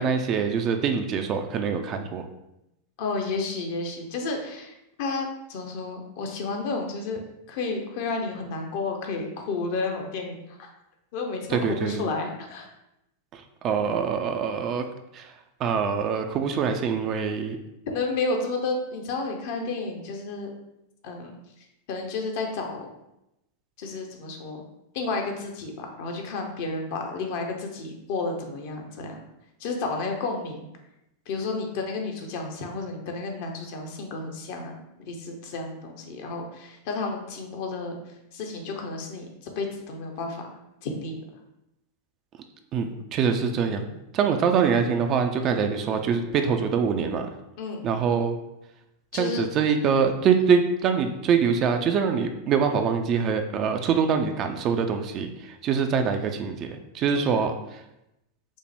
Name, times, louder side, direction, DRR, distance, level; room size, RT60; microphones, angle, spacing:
voice 1, 0.0-2.2 11.5-12.0 13.3-14.8 15.1-15.3 15.6-17.6 42.7-47.3 47.8-48.4 49.1-57.8, right 6 dB, 35° right, 6 dB, 0.4 m, -24 dB
voice 2, 3.0-7.2 7.5-10.4 11.1-12.6 17.9-20.5 21.0-21.3 21.9-22.9 23.8-24.6 24.9-29.2 29.6-30.6 31.3-34.7 35.0-38.0 38.3-40.5 40.8-41.2 47.6-47.8 49.1-49.4 57.1-57.2, left 3 dB, 50° left, 3 dB, 0.7 m, -31 dB
5.2 x 2.1 x 3.4 m, 0.88 s
figure-of-eight pair, 90°, 0 cm